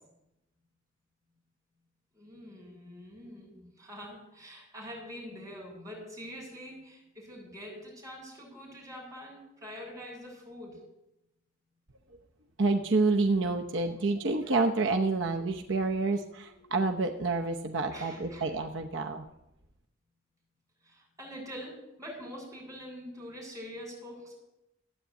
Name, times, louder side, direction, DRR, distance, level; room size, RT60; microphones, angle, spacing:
voice 1, 2.1-10.8 17.9-18.5 20.8-24.3, equal, 20° right, -4 dB, 7.8 m, -45 dB
voice 2, 12.6-19.2, right 3 dB, 65° right, 3 dB, 0.9 m, -28 dB
15.0 x 9.0 x 8.3 m, 0.91 s
head